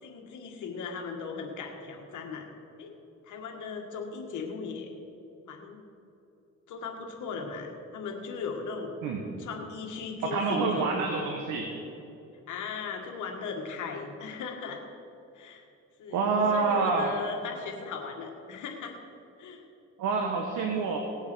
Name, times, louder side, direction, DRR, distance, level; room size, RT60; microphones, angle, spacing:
voice 1, 0.0-2.5 2.8-2.9 3.2-4.9 5.5-5.8 6.7-8.9 9.4-11.1 12.5-14.8 15.3-15.6 16.0-16.2 16.5-19.0 19.4-19.6 20.6-21.0, left 5 dB, 75° left, 2 dB, 1.9 m, -37 dB
voice 2, 10.2-11.7 16.1-17.2 20.0-21.0, right 4 dB, 90° right, 2 dB, 1.4 m, -27 dB
18.5 x 7.3 x 6.3 m, 2.8 s
cardioid pair, 90°, 30 cm